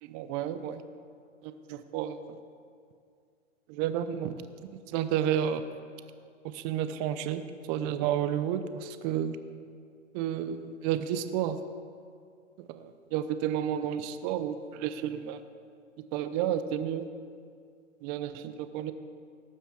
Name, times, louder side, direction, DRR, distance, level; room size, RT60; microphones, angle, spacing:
voice 1, 0.0-0.8 1.4-2.4 3.7-4.3 4.9-5.7 6.4-7.4 7.7-9.4 10.1-11.6 12.6-15.4 16.1-17.1 18.0-18.9, right 10 dB, 35° right, 11 dB, 0.9 m, -31 dB
18.5 x 8.0 x 7.1 m, 2.2 s
hypercardioid pair, 130°, 37 cm